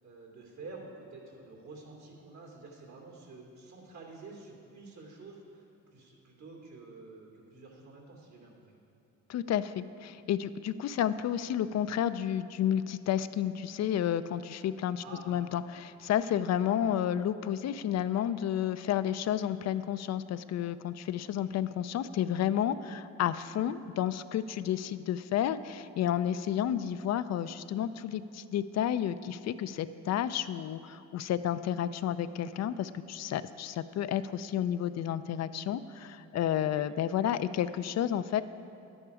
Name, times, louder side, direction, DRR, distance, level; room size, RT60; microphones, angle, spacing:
voice 1, 0.0-8.8 11.4-11.5 15.0-15.4 36.7-36.9, right 3 dB, 70° right, 0 dB, 2.7 m, -49 dB
voice 2, 9.3-38.4, left 10 dB, 60° left, 13 dB, 0.5 m, -31 dB
11.0 x 9.9 x 4.8 m, 2.8 s
cardioid pair, 90°, 30 cm